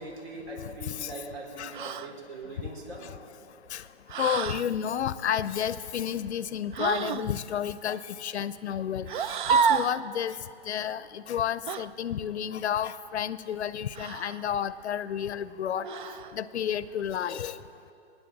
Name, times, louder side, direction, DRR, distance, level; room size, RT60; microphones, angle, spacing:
voice 1, 0.0-3.1 15.7-16.0, right 2 dB, 65° right, -1 dB, 4.3 m, -41 dB
voice 2, 0.8-1.1 1.6-1.8 3.0-3.1 3.7-3.8 4.2-10.4 10.7-15.9 16.3-17.6, left 9 dB, 70° left, 16 dB, 0.6 m, -31 dB
sound 1, 1.7-2.1 4.1-4.7 6.7-7.3 9.1-10.0 11.7-11.9 13.9-14.4 15.8-16.3, right 6 dB, 45° right, 0.5 m, -28 dB
25.5 x 9.7 x 4.0 m, 2.7 s
hypercardioid pair, 135°, 34 cm